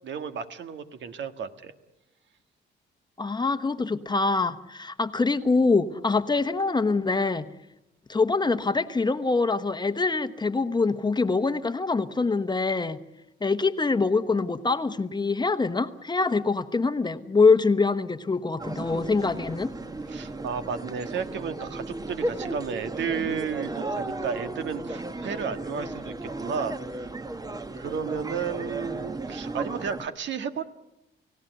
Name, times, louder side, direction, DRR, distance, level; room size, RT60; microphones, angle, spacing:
voice 1, 0.0-1.7 20.1-27.1 27.8-30.6, right 6 dB, 65° right, 8 dB, 1.8 m, -33 dB
voice 2, 3.2-7.5 8.1-13.0 13.4-19.7, left 4 dB, 20° left, 10 dB, 1.1 m, -24 dB
sound 1, 18.6-30.1, right 2 dB, 20° right, 1.3 m, -35 dB
30.0 x 17.0 x 8.1 m, 0.93 s
cardioid pair, 90°, 20 cm